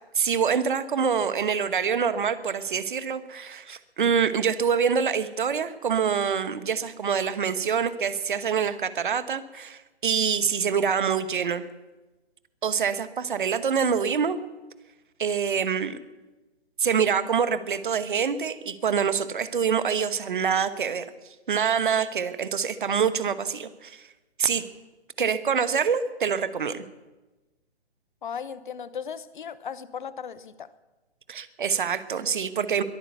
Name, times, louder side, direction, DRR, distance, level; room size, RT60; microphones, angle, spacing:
voice 1, 0.1-11.7 12.6-14.4 15.2-16.0 16.8-21.0 21.5-24.0 24.4-24.7 25.2-26.8 31.3-32.8, right 7 dB, 50° right, 1.2 m, -25 dB
voice 2, 28.2-30.7, left 7 dB, 50° left, 0.9 m, -36 dB
22.0 x 8.9 x 6.9 m
figure-of-eight pair, 135°, 32 cm